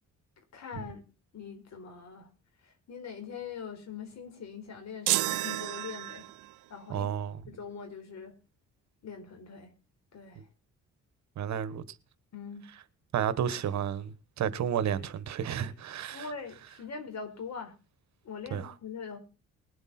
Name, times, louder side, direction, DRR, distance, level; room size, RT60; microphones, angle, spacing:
voice 1, 0.5-1.0 1.3-2.3 2.6-6.3 6.7-7.1 7.5-8.3 9.0-9.7 10.1-10.4 12.3-12.6 16.1-17.7 18.2-19.2, left 6 dB, 60° left, 4.5 m, -42 dB
sound 1, 5.1-6.5, right 18 dB, 90° right, 0.6 m, -31 dB
voice 2, 6.9-7.4 11.4-11.8 13.1-16.3 18.5-18.7, right 9 dB, 65° right, 1.2 m, -31 dB
21.0 x 8.1 x 4.2 m
cardioid pair, 90°, 30 cm